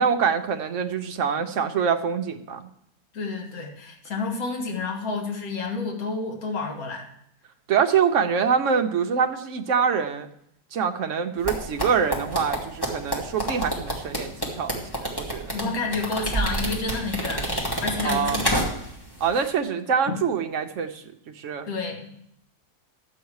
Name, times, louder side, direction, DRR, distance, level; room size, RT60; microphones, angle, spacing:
voice 1, 0.0-2.7 7.7-10.3 10.7-15.5 18.0-18.4 19.2-21.0 21.4-21.7, right 6 dB, 55° right, 7 dB, 1.0 m, -25 dB
voice 2, 3.1-7.1 15.5-17.5 17.8-18.5 20.1-20.2 21.7-22.1, left 4 dB, 60° left, 1 dB, 2.0 m, -30 dB
sound 1, 11.4-19.0 19.3-19.5, right 1 dB, 15° left, 1.9 m, -28 dB
11.5 x 7.9 x 4.7 m, 0.72 s
omnidirectional pair, 1.7 m